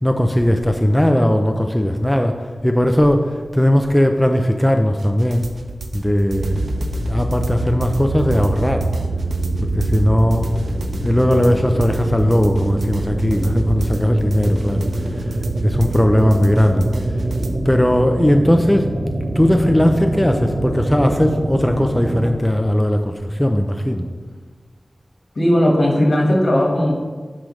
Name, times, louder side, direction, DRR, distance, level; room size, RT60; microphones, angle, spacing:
voice 1, 0.0-2.4 2.6-5.5 5.9-8.9 9.6-10.5 11.0-14.9 15.1-15.4 15.6-16.9 17.7-18.9 19.4-24.1, equal, 10° left, 4 dB, 0.5 m, -18 dB
sound 1, 5.0-17.5, right 3 dB, 85° right, 0.6 m, -35 dB
sound 2, 6.3-22.3, right 1 dB, 55° right, 0.9 m, -24 dB
voice 2, 25.3-26.9, left 1 dB, 60° left, -1 dB, 1.5 m, -16 dB
9.9 x 5.0 x 3.2 m, 1.5 s
wide cardioid pair, 65°, 0 cm